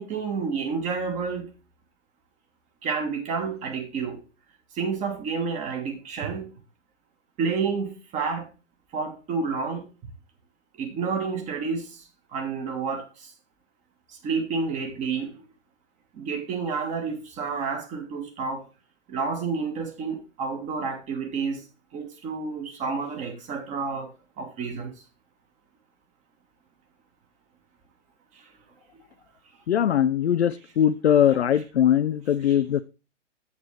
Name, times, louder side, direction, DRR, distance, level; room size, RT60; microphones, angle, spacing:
voice 1, 0.0-1.5 2.8-4.2 4.7-6.5 7.4-8.5 8.9-9.8 10.8-12.0 12.3-13.3 14.1-15.4 16.1-18.6 19.1-21.7 21.9-24.1 24.4-24.9 28.3-28.5 32.4-32.6, right 5 dB, 20° right, 1.4 m, -30 dB
voice 2, 29.7-32.8, left 10 dB, 60° left, 0.5 m, -21 dB
8.1 x 7.2 x 3.2 m
figure-of-eight pair, 125°, 37 cm